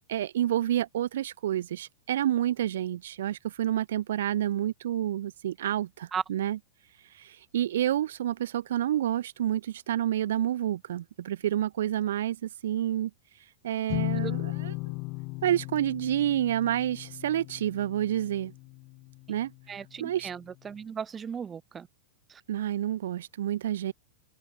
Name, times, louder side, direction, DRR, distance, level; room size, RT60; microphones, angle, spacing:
voice 1, 0.1-6.6 7.0-13.1 13.6-14.7 15.4-18.5 19.3-19.5 20.0-20.3 22.5-23.9, right 12 dB, 75° right, 0.8 m, -29 dB
sound 1, 13.9-19.5, left 26 dB, 50° left, 3.0 m, -36 dB
voice 2, 19.7-21.9 22.3-22.4, right 7 dB, 20° right, 2.0 m, -36 dB
open air
hypercardioid pair, 110°, 0 cm